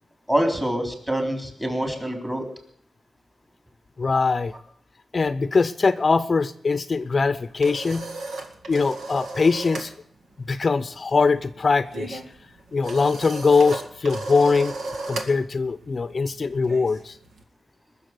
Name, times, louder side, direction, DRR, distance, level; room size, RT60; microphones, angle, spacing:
voice 1, 0.3-2.5, right 1 dB, 10° right, 5 dB, 3.9 m, -25 dB
voice 2, 4.0-4.5 5.1-8.1 8.7-9.9 10.5-12.2 12.7-14.7 15.1-17.2, left 4 dB, 45° left, 13 dB, 0.6 m, -22 dB
sound 1, 7.2-9.9 10.2-10.5 10.8-17.4, right 2 dB, 90° right, 2.2 m, -36 dB
21.0 x 7.1 x 9.6 m, 0.63 s
cardioid pair, 85°, 0 cm